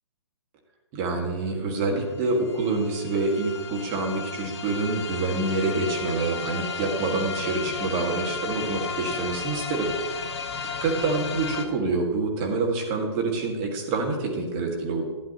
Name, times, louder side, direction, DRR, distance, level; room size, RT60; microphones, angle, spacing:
voice 1, 0.9-9.9 10.8-15.0, right 3 dB, 30° right, 1 dB, 1.9 m, -26 dB
sound 1, 1.4-1.5 1.7-11.6, left 5 dB, 60° left, 1.4 m, -34 dB
12.0 x 10.0 x 3.0 m, 1.3 s
figure-of-eight pair, 135°, 15 cm